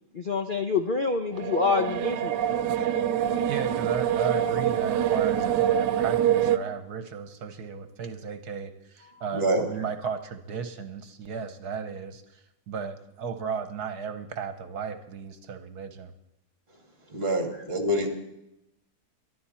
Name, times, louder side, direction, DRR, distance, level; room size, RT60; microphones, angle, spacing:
voice 1, 0.1-2.4 9.1-9.2, left 4 dB, 45° left, 5 dB, 0.7 m, -27 dB
sound 1, 1.3-6.6, right 10 dB, 85° right, 1.3 m, -25 dB
voice 2, 3.5-16.1, right 6 dB, 70° right, 9 dB, 1.5 m, -35 dB
voice 3, 9.3-9.6 17.1-18.1, right 1 dB, 35° right, 4 dB, 2.4 m, -26 dB
23.0 x 12.0 x 4.3 m, 0.87 s
omnidirectional pair, 1.7 m